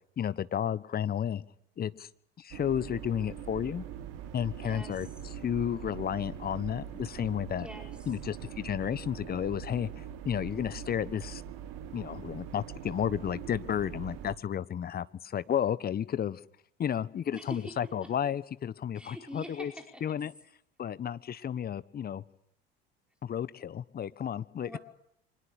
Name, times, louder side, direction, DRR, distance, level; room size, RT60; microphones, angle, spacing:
voice 1, 0.2-1.4 1.8-2.1 2.4-3.8 4.3-5.1 5.4-7.7 8.1-11.4 11.9-16.4 16.8-19.7 20.0-20.3 20.8-22.2 23.2-24.8, left 9 dB, 30° left, 16 dB, 1.2 m, -32 dB
sound 1, 2.5-14.4, right 10 dB, 55° right, 2.2 m, -42 dB
voice 2, 4.6-5.1 7.6-8.1 17.3-17.7 18.0-18.1 18.9-20.2 24.6-24.8, equal, 5° right, 3 dB, 5.1 m, -45 dB
25.0 x 20.5 x 8.3 m, 0.70 s
figure-of-eight pair, 70°, 30 cm